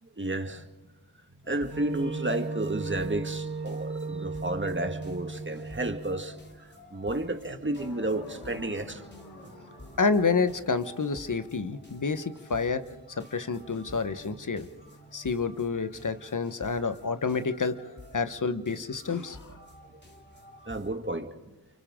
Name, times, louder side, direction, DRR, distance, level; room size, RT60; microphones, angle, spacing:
voice 1, 0.2-0.7 1.5-6.4 6.9-9.1 9.4-9.5 20.7-21.3, right 2 dB, 30° right, 2.0 m, -31 dB
sound 1, 1.4-20.9, equal, 25° left, 3.3 m, -51 dB
Wind instrument woodwind instrument, 1.7-6.4, right 4 dB, 90° right, 3.2 m, -36 dB
sound 2, 7.7-11.8, left 1 dB, 85° left, 4.7 m, -48 dB
voice 2, 10.0-12.8 13.2-14.7 15.1-17.8 18.1-19.6, left 4 dB, 50° left, 1.3 m, -29 dB
29.5 x 24.0 x 3.8 m
cardioid pair, 50°, 41 cm